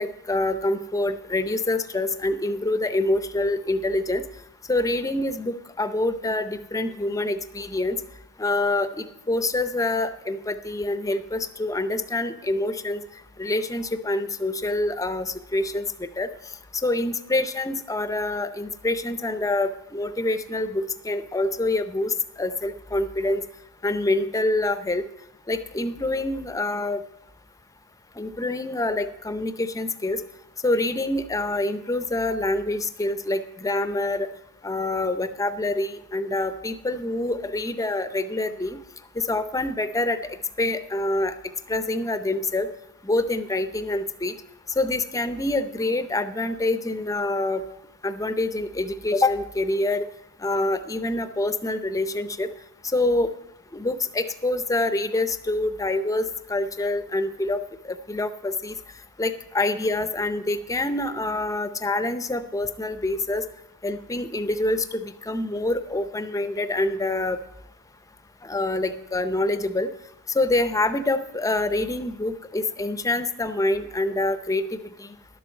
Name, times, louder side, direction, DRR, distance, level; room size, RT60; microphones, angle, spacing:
voice 1, 0.0-4.2 4.7-8.0 8.4-13.0 13.4-15.8 16.2-16.3 16.8-23.4 23.8-25.0 25.5-27.0 28.2-30.2 30.6-34.3 34.6-38.8 39.3-40.2 40.6-41.3 41.7-42.7 43.0-44.3 44.8-47.6 48.0-50.0 50.4-52.5 52.9-53.3 53.7-57.6 57.9-58.7 59.2-63.4 63.8-67.4 68.4-69.9 70.3-74.6 75.0-75.1, left 2 dB, 15° left, 10 dB, 0.5 m, -26 dB
11.5 x 7.7 x 6.5 m, 0.82 s
head